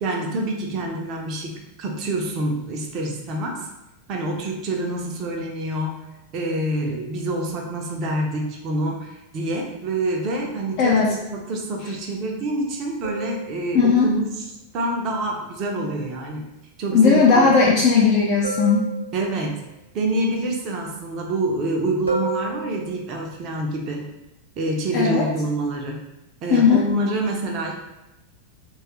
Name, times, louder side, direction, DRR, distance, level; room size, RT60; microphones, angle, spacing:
voice 1, 0.0-3.7 4.1-5.9 6.3-14.4 14.7-16.5 16.8-17.5 19.1-19.6 19.9-24.0 24.6-26.0 26.4-27.7, right 2 dB, 35° right, 0 dB, 0.5 m, -26 dB
voice 2, 10.8-11.1 13.7-14.1 16.9-18.9 24.9-25.3 26.5-26.8, left 5 dB, 45° left, -3 dB, 0.4 m, -17 dB
sound 1, 13.0-14.1 18.4-19.7 22.1-23.3 26.6-26.8, right 4 dB, 80° right, 0.7 m, -33 dB
3.1 x 2.3 x 2.9 m, 0.94 s
figure-of-eight pair, 90°, 0 cm